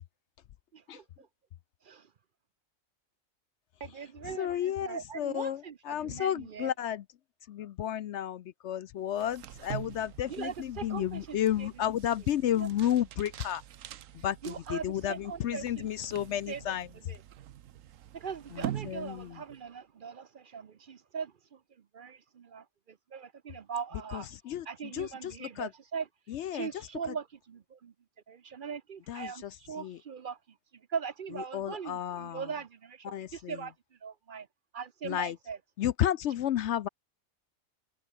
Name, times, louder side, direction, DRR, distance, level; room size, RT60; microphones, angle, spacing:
voice 1, 0.7-1.3 1.8-2.1 3.8-6.7 10.3-11.7 12.6-12.7 14.4-16.1 16.5-16.8 17.1-17.2 18.1-21.6 21.9-24.3 24.7-26.1 26.5-27.9 28.3-30.4 30.9-33.7 34.0-34.5 34.7-35.6, right 6 dB, 50° right, 0.7 m, -40 dB
voice 2, 4.2-7.0 7.5-13.6 14.2-16.9 18.5-19.4 24.1-25.7 26.3-26.7 29.1-30.0 31.5-32.5 33.0-33.6 35.0-35.4 35.8-36.9, left 11 dB, 65° left, 0.8 m, -32 dB
sound 1, 9.1-19.7, right 11 dB, 65° right, 1.1 m, -45 dB
omnidirectional pair, 1.5 m